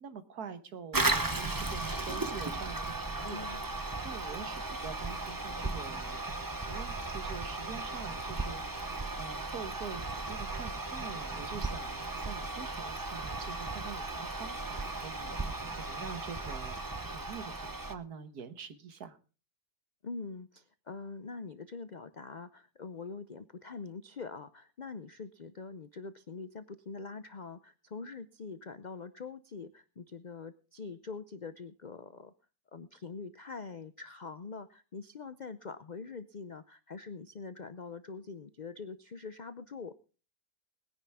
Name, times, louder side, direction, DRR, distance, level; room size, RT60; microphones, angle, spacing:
voice 1, 0.0-3.5 4.0-6.2 6.6-8.6 9.2-16.8 17.0-19.2, right 6 dB, 75° right, 11 dB, 1.8 m, -45 dB
Toilet flush, 0.9-17.9, right 2 dB, 15° right, 0.8 m, -36 dB
voice 2, 3.2-3.6 20.0-32.3 32.7-39.9, left 4 dB, 60° left, 13 dB, 0.4 m, -44 dB
20.5 x 10.0 x 3.6 m, 0.36 s
omnidirectional pair, 1.7 m